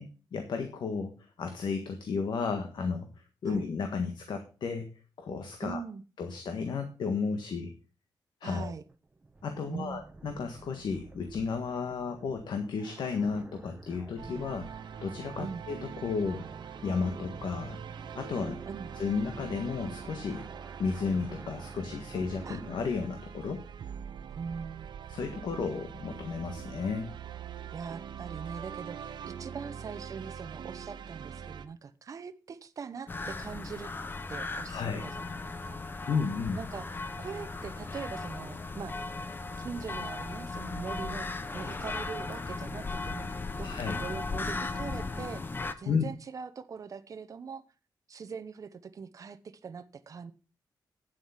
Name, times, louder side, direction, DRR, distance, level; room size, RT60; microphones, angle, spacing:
voice 1, 0.0-3.1 3.4-4.9 5.2-5.8 6.2-7.7 8.4-8.7 9.4-14.7 15.0-16.5 16.8-17.8 18.1-18.6 18.9-20.5 20.8-23.6 25.1-27.1 34.7-35.1 36.1-36.6 43.6-44.0 45.9-46.0, left 5 dB, 75° left, 1.6 m, -33 dB
voice 2, 5.6-6.0 8.4-8.8 9.7-10.1 15.4-15.6 18.7-18.9 22.4-22.6 24.4-24.9 27.7-33.9 34.3-36.1 36.5-36.9 37.2-39.0 39.6-41.3 41.5-43.3 43.6-47.6 48.1-50.3, right 5 dB, 45° right, 0.8 m, -42 dB
sound 1, 8.9-22.9, right 2 dB, 20° right, 1.2 m, -50 dB
sound 2, 14.2-31.6, right 8 dB, 75° right, 0.8 m, -43 dB
sound 3, 33.1-45.7, left 3 dB, 25° left, 0.8 m, -37 dB
9.8 x 7.9 x 5.7 m
wide cardioid pair, 140°, 8 cm